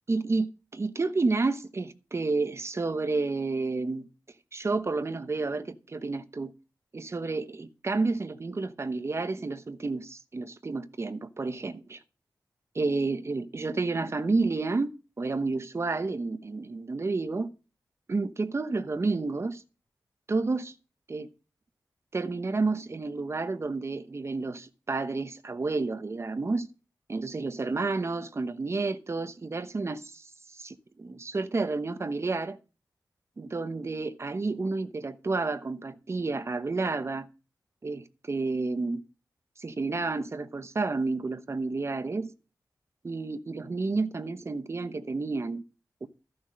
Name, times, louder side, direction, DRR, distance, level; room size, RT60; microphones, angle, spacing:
voice 1, 0.1-4.1 4.5-6.5 6.9-12.0 12.7-14.9 15.2-17.5 18.1-19.6 20.3-20.7 21.1-21.3 22.1-26.7 27.1-32.6 33.4-37.3 37.8-39.0 39.6-42.3 43.0-45.6 46.0-46.1, right 3 dB, 40° right, 1.0 m, -30 dB
14.0 x 6.2 x 6.3 m
wide cardioid pair, 135°, 7 cm